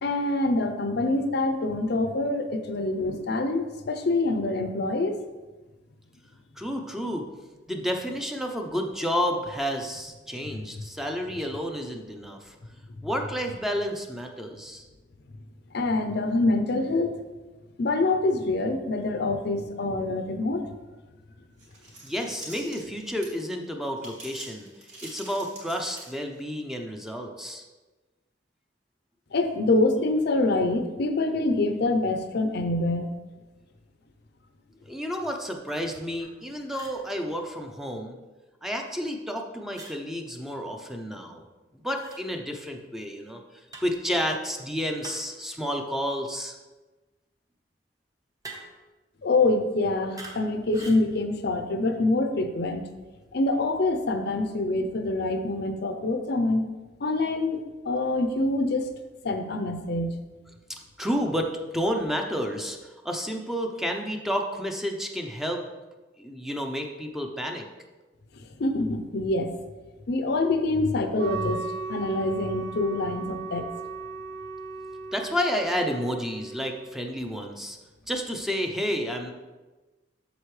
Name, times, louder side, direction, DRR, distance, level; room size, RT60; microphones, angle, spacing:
voice 1, 0.0-5.2 15.7-17.2 17.8-20.7 29.3-33.1 49.2-52.8 53.3-56.7 57.0-58.9 59.2-60.2 68.6-69.6 70.1-73.7, left 2 dB, 60° left, 7 dB, 0.6 m, -25 dB
voice 2, 6.6-7.2 7.7-12.5 13.0-14.8 22.0-24.7 25.0-27.6 34.8-38.2 38.6-41.4 41.7-43.4 43.8-46.6 60.7-65.6 66.2-67.7 75.1-77.8 78.1-79.3, equal, ahead, 3 dB, 0.6 m, -30 dB
sound 1, 21.6-23.5 24.0-26.4, right 2 dB, 40° right, 2.5 m, -44 dB
sound 2, 36.2-36.3 36.7-37.0 39.7-40.0 41.9-42.2 43.7-44.0 45.0-45.4 48.4-48.9 50.2-50.4 50.7-51.0, right 2 dB, 20° right, 1.0 m, -44 dB
Wind instrument woodwind instrument, 71.2-77.0, right 4 dB, 65° right, 0.4 m, -37 dB
7.9 x 6.7 x 3.2 m, 1.2 s
head